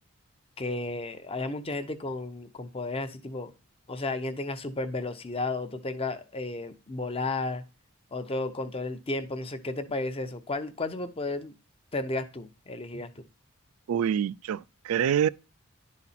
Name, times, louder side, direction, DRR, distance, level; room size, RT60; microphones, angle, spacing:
voice 1, 0.6-3.5 3.9-7.6 8.1-11.5 11.9-13.1, left 2 dB, 25° left, 0.7 m, -33 dB
voice 2, 13.9-15.3, right 8 dB, 85° right, 0.3 m, -26 dB
10.5 x 4.2 x 4.2 m
head